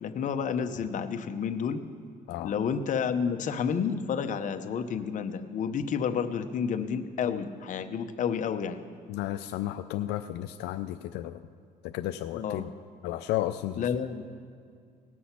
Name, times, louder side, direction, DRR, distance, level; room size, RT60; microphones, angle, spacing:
voice 1, 0.0-1.8 2.4-8.8 12.3-12.6 13.8-14.2, left 7 dB, 50° left, 8 dB, 0.8 m, -30 dB
voice 2, 9.1-11.5 11.8-12.7 13.0-13.9, left 13 dB, 80° left, 8 dB, 0.4 m, -33 dB
18.5 x 6.3 x 5.7 m, 2.3 s
cardioid pair, 110°, 17 cm